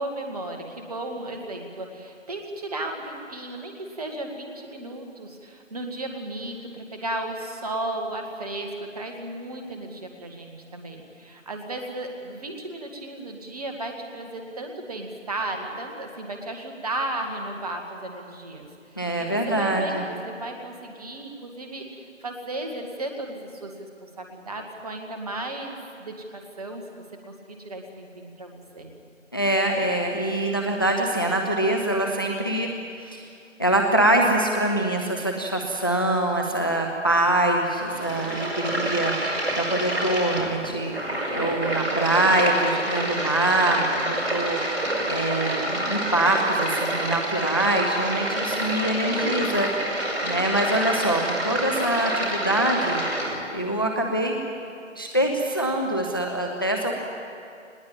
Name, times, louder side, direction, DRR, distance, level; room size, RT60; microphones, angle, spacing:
voice 1, 0.0-28.9, right 1 dB, 30° right, 3 dB, 2.0 m, -35 dB
voice 2, 19.0-20.0 29.3-32.7 33.0-33.3 33.6-40.9 41.3-53.0 53.5-54.4 55.0-57.0, right 1 dB, 20° left, 2 dB, 0.7 m, -24 dB
sound 1, 37.7-53.3, right 1 dB, 55° right, 6.0 m, -28 dB
20.0 x 17.5 x 8.7 m, 2.4 s
figure-of-eight pair, 155°, 38 cm